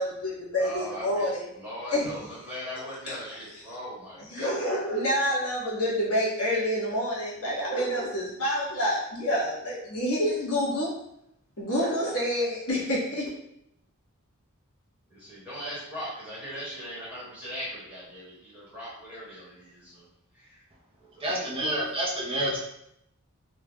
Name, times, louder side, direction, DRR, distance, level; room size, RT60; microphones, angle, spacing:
voice 1, 0.0-1.5 1.9-2.0 3.1-3.7 4.2-10.9 11.6-13.3 21.3-21.9, equal, 80° left, -6 dB, 1.1 m, -28 dB
voice 2, 0.5-1.3 1.6-4.5 15.1-20.0 20.4-20.6 21.2-21.3, equal, 5° right, -9 dB, 1.0 m, -39 dB
voice 3, 21.2-22.6, right 1 dB, 25° right, -4 dB, 0.4 m, -28 dB
3.2 x 2.1 x 2.3 m, 0.78 s
head